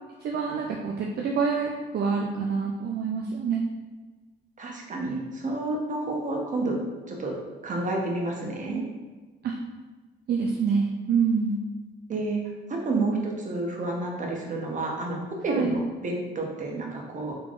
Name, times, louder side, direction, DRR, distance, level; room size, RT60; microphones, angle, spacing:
voice 1, 0.2-3.6 9.4-9.6 10.3-11.6 15.5-15.8, right 5 dB, 55° right, 1 dB, 0.4 m, -26 dB
voice 2, 4.6-6.8 7.1-8.8 12.1-12.4 12.7-17.3, right 2 dB, 40° right, 0 dB, 0.8 m, -30 dB
3.7 x 3.4 x 2.4 m, 1.3 s
cardioid pair, 90°, 20 cm